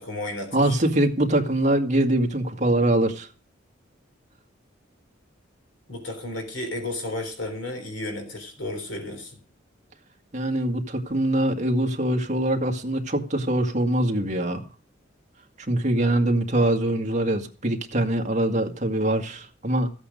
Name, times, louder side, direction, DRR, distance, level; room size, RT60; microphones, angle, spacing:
voice 1, 0.0-0.8 5.9-9.4, left 1 dB, 75° left, 5 dB, 3.7 m, -33 dB
voice 2, 0.5-3.3 10.3-14.7 15.7-19.9, right 1 dB, 40° right, 3 dB, 1.9 m, -23 dB
15.0 x 8.7 x 5.2 m, 0.37 s
head